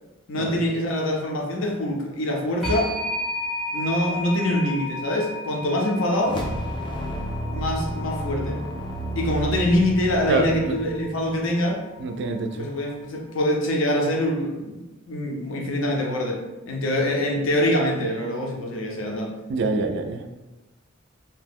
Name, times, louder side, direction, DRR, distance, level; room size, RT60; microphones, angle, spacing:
voice 1, 0.3-2.9 3.7-6.4 7.5-8.6 9.1-11.8 12.6-19.3, left 1 dB, 75° left, 0 dB, 0.6 m, -24 dB
sound 1, 2.6-13.2, left 1 dB, ahead, 0.7 m, -35 dB
sound 2, 6.2-11.6, right 1 dB, 25° left, 0.3 m, -31 dB
voice 2, 10.3-10.8 12.0-12.7 19.5-20.2, right 3 dB, 55° right, 6 dB, 0.3 m, -26 dB
2.8 x 2.0 x 3.5 m, 1.1 s
head